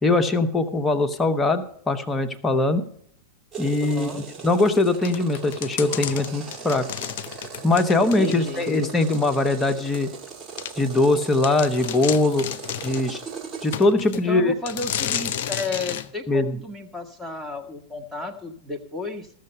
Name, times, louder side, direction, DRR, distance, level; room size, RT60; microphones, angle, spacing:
voice 1, 0.0-2.9 3.6-6.9 7.6-10.1 10.8-12.5 12.8-13.2 13.6-14.5 16.3-16.6, left 2 dB, 15° left, 6 dB, 1.0 m, -21 dB
sound 1, 3.5-13.7, right 6 dB, 25° right, 2.0 m, -39 dB
voice 2, 3.8-4.2 8.0-8.7 14.1-19.3, left 3 dB, 5° right, 2 dB, 1.4 m, -33 dB
sound 2, 5.0-8.7 9.1-9.2 9.9-10.0 10.6-10.7 11.1-11.2 11.4-13.1 13.7-14.2 14.7-16.1, left 9 dB, 50° left, 0.6 m, -31 dB
15.0 x 6.6 x 5.4 m, 0.66 s
figure-of-eight pair, 90°, 0 cm